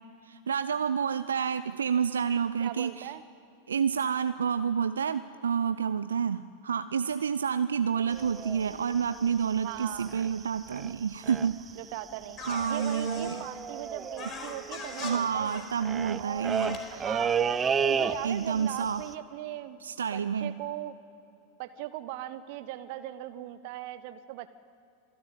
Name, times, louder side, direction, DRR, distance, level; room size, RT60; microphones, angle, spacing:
voice 1, 0.2-3.1 3.7-11.6 12.4-13.4 15.0-16.8 18.2-19.0 19.8-20.5, right 7 dB, 70° right, 12 dB, 0.6 m, -29 dB
voice 2, 2.6-3.2 9.6-10.1 11.8-12.4 12.7-15.6 16.2-17.4 17.8-19.8 20.1-21.0 21.6-24.5, right 14 dB, 45° right, 13 dB, 0.9 m, -39 dB
sound 1, 8.1-10.4 10.7-10.9 11.2-11.7 12.0-12.1 12.2-18.6 18.9-19.1, right 6 dB, 20° right, 0.9 m, -32 dB
sound 2, 12.4-13.4 14.2-15.1 15.4-15.7 16.5-16.8, left 4 dB, 30° left, 4.4 m, -40 dB
26.0 x 13.0 x 9.1 m, 2.7 s
figure-of-eight pair, 90°, 0 cm